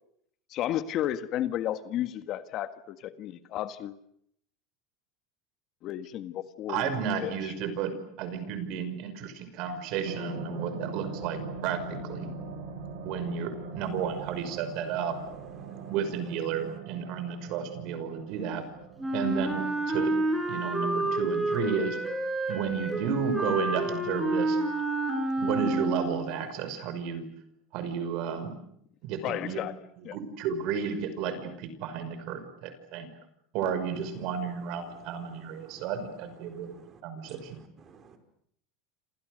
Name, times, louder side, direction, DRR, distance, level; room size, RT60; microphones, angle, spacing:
voice 1, 0.5-3.9 5.8-7.5 29.2-29.8 30.0-30.2, left 12 dB, 45° left, 11 dB, 1.7 m, -33 dB
voice 2, 6.7-12.3 13.0-15.1 15.9-18.6 19.1-20.1 20.5-22.0 22.5-24.6 25.4-27.3 27.7-28.5 29.0-29.6 30.0-33.1 33.5-37.6, right 7 dB, 55° right, 10 dB, 5.7 m, -32 dB
sound 1, 10.0-20.9 21.3-21.4, right 4 dB, 75° right, 5.8 m, -41 dB
voice 3, 13.8-16.2 16.5-16.8 34.2-34.4 34.8-35.9 36.4-38.2, right 6 dB, 30° right, 7 dB, 5.2 m, -54 dB
Wind instrument woodwind instrument, 19.0-26.3, right 2 dB, 5° right, 6.8 m, -29 dB
28.5 x 27.5 x 6.6 m, 0.70 s
supercardioid pair, 135°, 0 cm